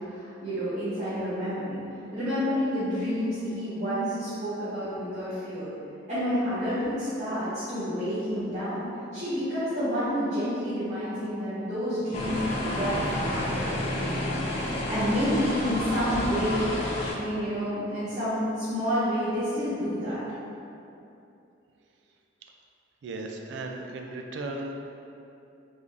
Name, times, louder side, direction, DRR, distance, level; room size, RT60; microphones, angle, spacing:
voice 1, 0.0-1.8 2.1-5.7 6.1-8.9 9.1-13.7 13.9-16.6 17.1-20.2, equal, 35° right, -16 dB, 1.0 m, -29 dB
sound 1, 12.1-17.1, left 1 dB, 30° left, 0.5 m, -30 dB
voice 2, 23.0-24.8, right 2 dB, 65° right, 2 dB, 0.3 m, -36 dB
3.6 x 2.5 x 3.2 m, 2.7 s
head